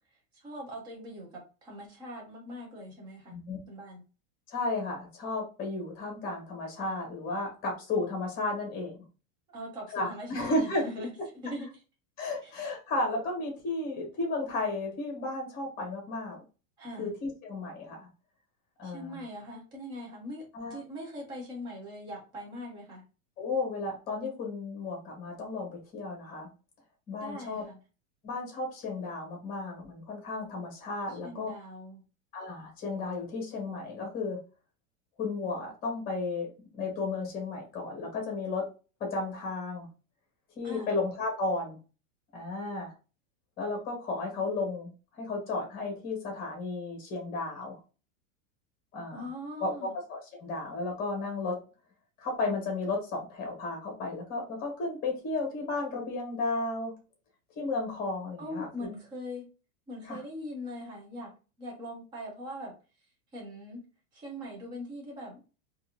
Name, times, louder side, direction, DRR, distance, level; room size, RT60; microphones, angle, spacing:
voice 1, 0.4-3.3 3.7-4.0 9.5-11.1 11.4-11.7 12.4-12.5 16.8-17.1 18.8-23.0 27.2-27.8 31.1-32.0 40.6-40.9 49.1-49.9 58.4-59.4 59.9-62.7 63.3-63.8 64.1-65.4, left 1 dB, 10° right, -1 dB, 0.5 m, -41 dB
voice 2, 4.5-9.0 9.9-10.8 12.2-16.4 17.0-18.1 18.8-19.2 20.5-20.8 23.4-26.5 27.1-27.6 28.2-31.5 32.3-34.4 35.2-36.5 36.7-38.6 39.0-39.9 40.5-41.8 42.3-42.9 43.6-47.8 48.9-49.3 49.6-51.6 52.2-56.9 57.5-58.9 60.0-60.2, left 3 dB, 20° left, 1 dB, 1.3 m, -33 dB
3.7 x 2.6 x 2.7 m, 0.33 s
supercardioid pair, 170°, 43 cm